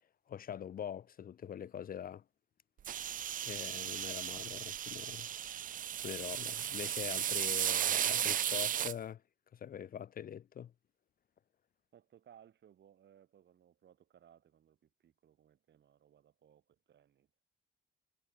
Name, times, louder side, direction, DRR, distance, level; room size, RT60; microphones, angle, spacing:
voice 1, 0.3-2.2 3.4-5.3 5.6-9.2 9.5-10.7, left 9 dB, 45° left, 0.6 m, -44 dB
sound 1, 2.8-8.9, right 10 dB, 45° right, 0.4 m, -35 dB
voice 2, 11.9-17.3, right 9 dB, 60° right, 5.1 m, -63 dB
cardioid pair, 90°, 20 cm